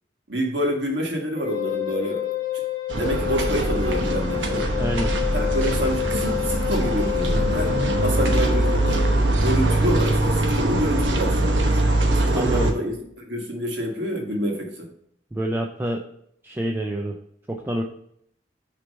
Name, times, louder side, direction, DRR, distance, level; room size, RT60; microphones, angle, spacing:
voice 1, 0.3-2.3 2.9-4.8 5.3-7.7 8.0-9.1 9.4-11.8 12.1-14.9, equal, 65° right, 0 dB, 1.6 m, -27 dB
Wind instrument woodwind instrument, 1.4-9.2, left 14 dB, 25° left, 1.2 m, -29 dB
sound 1, 2.9-12.7, right 1 dB, 85° right, 1.0 m, -22 dB
voice 2, 4.8-5.1 9.1-9.4 12.3-12.7 15.3-16.0 16.4-17.2 17.5-17.8, right 1 dB, 10° right, 1 dB, 0.4 m, -27 dB
6.2 x 3.3 x 5.2 m, 0.70 s
head